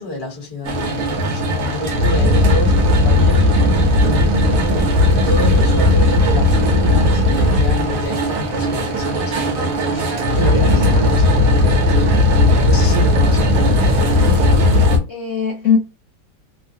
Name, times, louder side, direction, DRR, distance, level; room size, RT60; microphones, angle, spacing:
voice 1, 0.0-10.1 10.3-14.0, left 2 dB, 20° left, 0.7 m, -28 dB
sound 1, 0.6-15.0, left 1 dB, 65° right, 0.9 m, -16 dB
voice 2, 10.6-11.0 15.1-15.8, left 7 dB, 65° left, 0.7 m, -20 dB
3.1 x 2.2 x 2.6 m
omnidirectional pair, 2.1 m